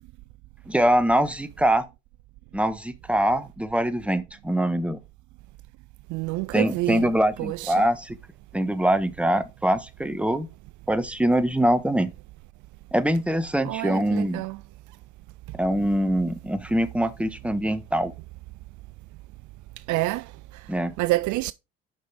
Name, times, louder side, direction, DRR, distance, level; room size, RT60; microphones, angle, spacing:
voice 1, 0.7-1.9 2.5-5.0 6.5-8.2 8.5-10.5 10.9-12.1 12.9-14.4 15.5-18.1 20.7-20.9, right 1 dB, 5° right, 1.2 m, -23 dB
voice 2, 6.1-7.1 7.4-7.9 13.6-14.6 19.9-20.2 21.0-21.5, right 19 dB, 60° right, 0.4 m, -27 dB
7.7 x 5.4 x 4.6 m
hypercardioid pair, 55°, 35 cm